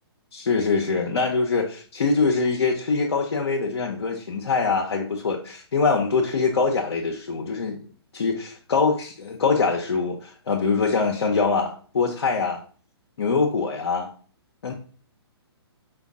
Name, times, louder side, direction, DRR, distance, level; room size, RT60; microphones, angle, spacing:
voice 1, 0.3-7.8 8.1-12.6 13.2-14.1 14.6-14.7, left 4 dB, 80° left, 0 dB, 0.8 m, -23 dB
5.0 x 2.4 x 3.6 m, 0.42 s
hypercardioid pair, 140°, 14 cm